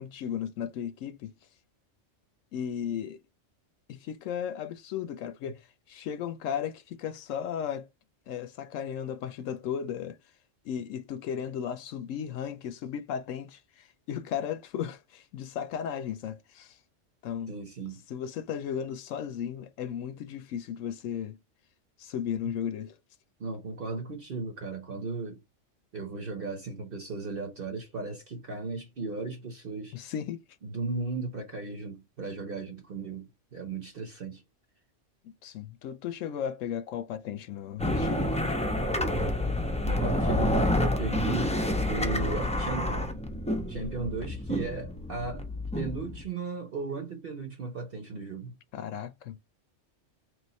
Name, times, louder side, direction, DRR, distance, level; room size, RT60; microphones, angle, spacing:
voice 1, 0.0-1.3 2.5-3.2 3.9-7.9 8.3-10.2 10.6-16.8 17.2-17.5 18.1-21.4 22.0-23.0 29.9-30.4 35.4-38.4 48.7-49.4, left 8 dB, 85° left, 1.0 m, -35 dB
voice 2, 17.5-18.0 23.4-25.4 25.9-30.0 30.6-34.4 39.8-41.5 41.9-43.1 43.7-45.5 45.7-48.5, right 3 dB, 50° right, 1.1 m, -36 dB
sound 1, 37.8-46.2, left 1 dB, 5° left, 0.6 m, -28 dB
3.2 x 3.1 x 4.1 m
omnidirectional pair, 1.3 m